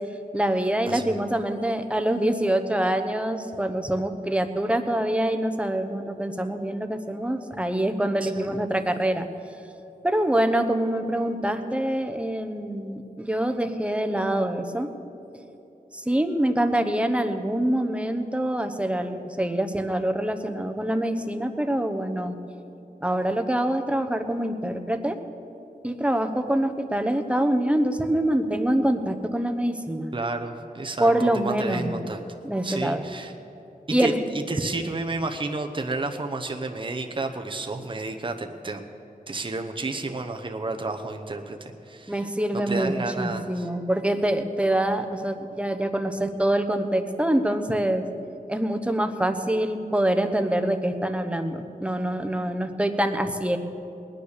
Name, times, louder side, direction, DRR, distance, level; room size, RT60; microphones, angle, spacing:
voice 1, 0.3-9.3 10.0-14.9 15.9-22.4 23.0-25.2 25.8-30.1 31.0-31.9 32.4-33.0 33.9-34.2 42.1-48.1 48.5-53.6, right 1 dB, 10° right, 7 dB, 1.0 m, -25 dB
voice 2, 0.9-1.2 8.2-8.5 30.1-32.2 32.6-33.3 33.9-38.8 39.3-42.2 42.5-43.7, right 3 dB, 35° right, 4 dB, 0.9 m, -31 dB
19.5 x 9.8 x 6.7 m, 2.9 s
wide cardioid pair, 85°, 15 cm